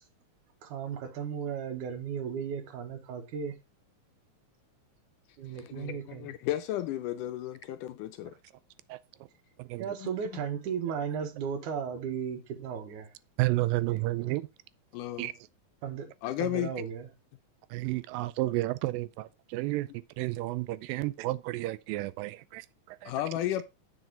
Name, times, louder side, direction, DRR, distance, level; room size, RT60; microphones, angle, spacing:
voice 1, 0.6-3.6 5.4-6.3 9.8-13.1 13.9-14.4 15.8-16.1 16.4-17.1, right 7 dB, 70° right, 2.4 m, -35 dB
voice 2, 5.5-8.3 10.0-10.1 14.9-15.3 16.2-16.7 23.1-23.6, left 12 dB, 80° left, 2.0 m, -33 dB
voice 3, 13.4-14.5 15.2-15.3 17.7-19.9 20.2-23.1, right 18 dB, 85° right, 2.3 m, -31 dB
7.8 x 6.0 x 3.8 m
omnidirectional pair, 4.0 m